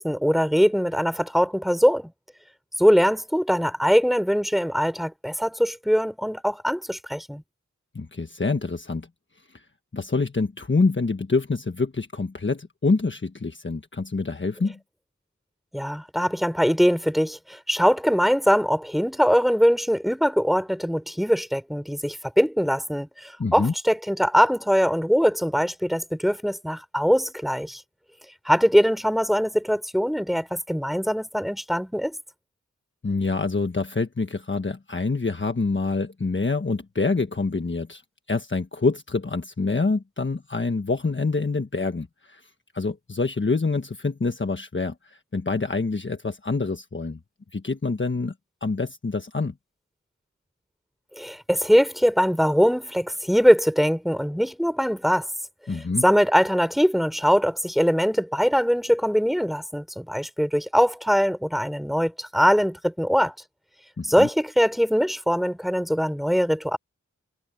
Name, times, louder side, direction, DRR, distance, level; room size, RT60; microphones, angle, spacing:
voice 1, 0.0-2.1 2.8-7.4 15.7-27.8 28.4-32.1 51.2-55.3 56.0-63.3 64.0-66.8, equal, ahead, 4.3 m, -22 dB
voice 2, 7.9-9.1 9.9-14.8 23.4-23.7 33.0-38.0 38.3-42.4 42.7-47.2 47.5-48.3 48.6-49.5 55.7-56.0 64.0-64.3, left 3 dB, 40° left, 1.4 m, -26 dB
wide cardioid pair, 80°, 30 cm